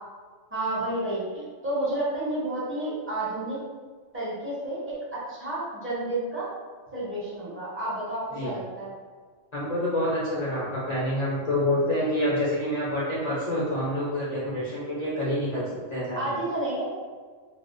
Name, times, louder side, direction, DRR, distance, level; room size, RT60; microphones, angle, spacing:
voice 1, 0.5-3.6 4.1-6.5 6.9-8.9 16.1-16.9, right 1 dB, 15° right, -8 dB, 0.4 m, -30 dB
voice 2, 9.5-16.2, left 1 dB, 55° left, -9 dB, 0.4 m, -27 dB
2.4 x 2.1 x 2.4 m, 1.5 s
omnidirectional pair, 1.3 m